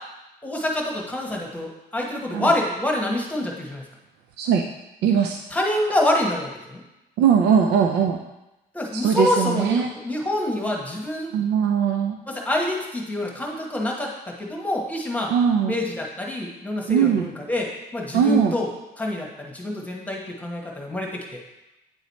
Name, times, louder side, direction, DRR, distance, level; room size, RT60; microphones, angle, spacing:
voice 1, 0.4-3.8 5.5-6.8 8.7-11.3 12.3-15.3 15.7-18.7 19.0-21.4, left 1 dB, 10° left, -1 dB, 1.2 m, -26 dB
voice 2, 5.0-5.4 7.2-8.2 8.9-9.9 11.3-12.2 15.3-15.8 16.9-17.3 18.1-18.5, right 7 dB, 80° right, 3 dB, 0.5 m, -20 dB
9.1 x 3.1 x 4.1 m, 0.96 s
cardioid pair, 110°, 17 cm